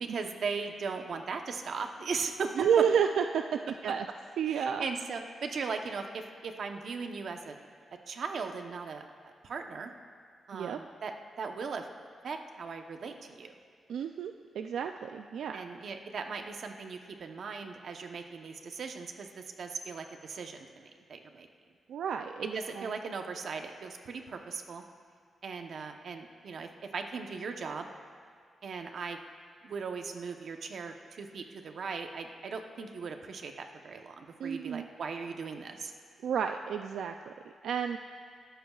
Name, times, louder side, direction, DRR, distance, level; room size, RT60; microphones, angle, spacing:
voice 1, 0.0-2.5 4.5-7.6 8.1-9.9 10.5-11.9 12.2-13.5 15.5-21.5 22.4-24.8 25.4-27.9 28.6-29.2 29.6-35.9, right 5 dB, 60° right, 4 dB, 0.9 m, -38 dB
voice 2, 2.6-4.1 4.4-4.9 10.5-10.8 13.9-15.6 21.9-22.9 34.4-34.9 36.2-37.3 37.6-38.0, right 7 dB, 90° right, 6 dB, 0.3 m, -31 dB
20.0 x 13.5 x 2.4 m, 2.1 s
wide cardioid pair, 130°, 0 cm